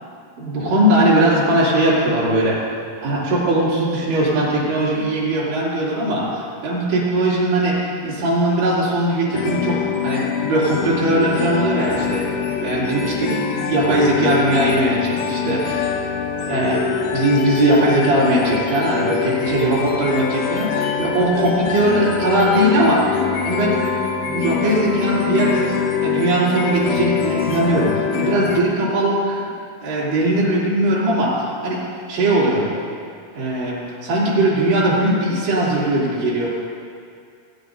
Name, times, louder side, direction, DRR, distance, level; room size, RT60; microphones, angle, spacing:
voice 1, 0.4-2.6 3.0-12.3 12.6-15.9 16.4-16.8 17.1-23.1 23.4-23.8 24.3-25.7 26.0-29.5 29.8-32.7 33.3-36.5, right 1 dB, 65° right, -8 dB, 4.8 m, -19 dB
sound 1, 9.3-28.6, left 7 dB, 80° left, 2.2 m, -24 dB
26.5 x 10.0 x 2.7 m, 2.3 s
omnidirectional pair, 5.8 m